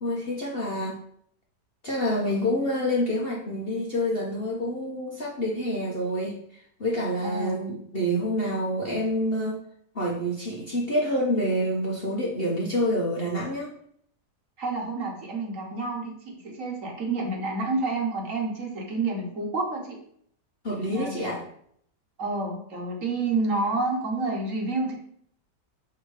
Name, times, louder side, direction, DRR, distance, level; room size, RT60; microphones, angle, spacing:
voice 1, 0.0-1.0 1.8-6.4 6.8-9.6 9.9-13.7 20.6-21.4, equal, 40° left, -2 dB, 1.0 m, -27 dB
voice 2, 7.2-7.6 14.6-20.0 20.7-21.4 22.2-24.9, right 3 dB, 50° right, 0 dB, 1.5 m, -29 dB
6.4 x 3.6 x 4.8 m, 0.67 s
omnidirectional pair, 1.8 m